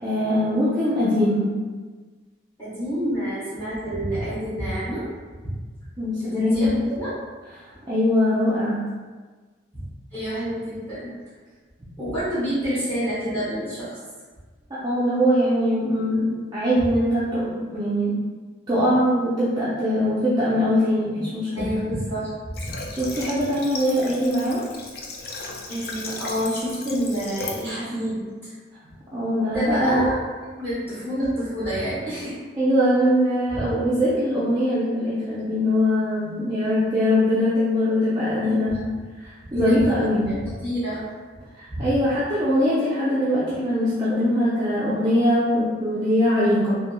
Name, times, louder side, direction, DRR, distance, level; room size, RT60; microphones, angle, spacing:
voice 1, 0.0-1.5 6.0-6.7 7.9-8.8 14.7-18.2 18.7-21.7 22.9-24.6 29.1-30.0 32.6-38.7 39.2-40.3 41.6-46.8, equal, 20° right, -10 dB, 0.4 m, -22 dB
voice 2, 2.6-5.0 6.2-7.1 9.7-9.8 10.1-11.1 12.0-14.0 21.5-22.8 25.7-28.5 29.5-30.1 30.6-32.4 38.4-38.9 39.4-40.0 40.2-41.1 41.7-41.8, equal, 10° left, -13 dB, 1.0 m, -28 dB
Water / Water tap faucet, 22.5-27.7, left 3 dB, 50° left, 0.4 m, -36 dB
3.1 x 2.8 x 2.2 m, 1.4 s
head